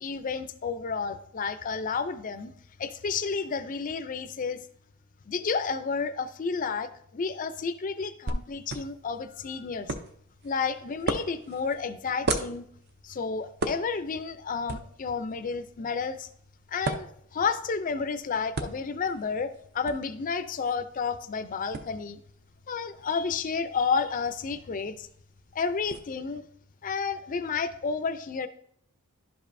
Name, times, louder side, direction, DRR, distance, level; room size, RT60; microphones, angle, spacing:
voice 1, 0.0-2.5 2.8-4.6 5.3-9.9 10.4-12.6 13.0-16.3 16.7-17.1 17.3-22.2 22.7-25.1 25.5-26.4 26.8-28.5, left 5 dB, 35° left, 11 dB, 0.4 m, -31 dB
sound 1, 8.3-26.0, right 2 dB, 50° right, 0.6 m, -39 dB
11.0 x 5.2 x 2.6 m, 0.66 s
head